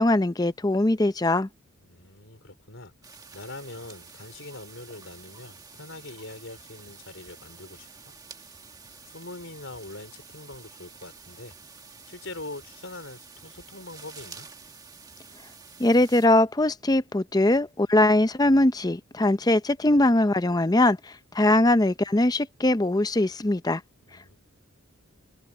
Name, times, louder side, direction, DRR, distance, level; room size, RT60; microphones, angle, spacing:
voice 1, 0.0-1.5 15.8-23.8, left 1 dB, 15° left, 0.6 m, -21 dB
voice 2, 1.8-8.2 9.0-11.6 12.1-14.5 24.1-24.4, left 2 dB, 60° left, 4.7 m, -43 dB
sound 1, 3.0-16.3, right 5 dB, 15° right, 1.9 m, -49 dB
head